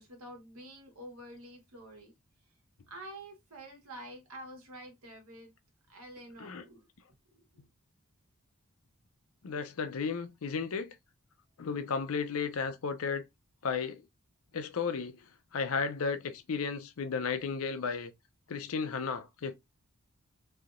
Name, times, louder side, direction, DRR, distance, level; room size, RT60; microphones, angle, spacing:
voice 1, 0.0-2.1 2.9-5.5 5.9-6.9 7.3-7.4, right 1 dB, 90° right, 1.4 m, -48 dB
voice 2, 9.4-10.9 11.6-13.3 13.6-14.0 14.5-15.2 15.5-18.1 18.5-19.5, left 5 dB, 80° left, 0.5 m, -34 dB
3.3 x 2.7 x 2.4 m
head